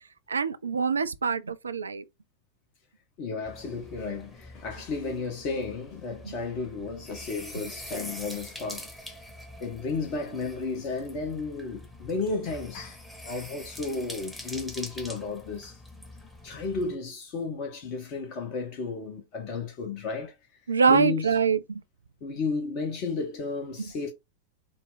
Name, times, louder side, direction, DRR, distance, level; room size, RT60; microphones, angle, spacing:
voice 1, 0.3-2.0 6.2-6.3 7.5-7.6 20.7-21.8, right 5 dB, 75° right, 0.3 m, -24 dB
voice 2, 3.2-9.1 9.6-15.8 16.4-20.3 20.9-21.3 22.2-24.1, left 4 dB, 40° left, 0.9 m, -33 dB
sound 1, 3.5-17.0, left 1 dB, 5° left, 0.9 m, -45 dB
4.0 x 2.0 x 3.9 m
figure-of-eight pair, 90°, 0 cm